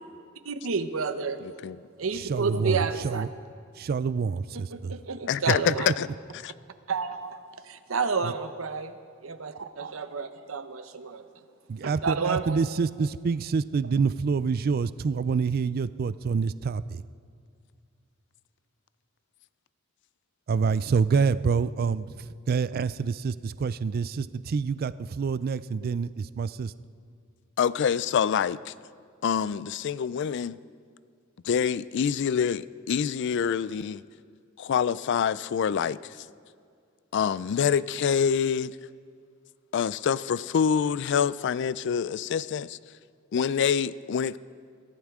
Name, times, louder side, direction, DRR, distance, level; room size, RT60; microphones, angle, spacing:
voice 1, 0.4-1.4 2.0-3.2 4.5-5.9 6.9-7.3 7.7-8.9 9.2-9.5 9.8-11.2 12.0-12.6, right 5 dB, 80° right, 0.8 m, -30 dB
voice 2, 1.4-1.8 5.3-6.1 6.4-6.5 27.6-28.7 29.2-30.6 31.4-34.0 34.6-36.2 37.1-38.8 39.7-42.8 43.3-44.4, left 7 dB, 60° left, 0.3 m, -26 dB
voice 3, 2.1-3.3 3.8-4.9 5.5-5.7 8.2-8.3 11.7-17.0 20.5-26.7, right 5 dB, 45° right, 0.4 m, -27 dB
22.5 x 15.0 x 3.6 m
head